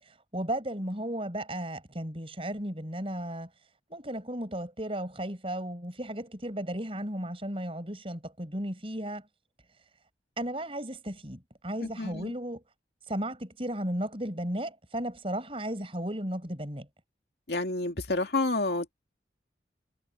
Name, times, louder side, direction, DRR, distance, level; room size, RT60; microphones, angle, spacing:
voice 1, 0.0-3.5 3.9-9.3 10.4-12.6 13.1-16.9, right 1 dB, 30° right, 5.7 m, -35 dB
voice 2, 11.8-12.3 17.5-18.9, left 2 dB, 65° left, 2.3 m, -29 dB
head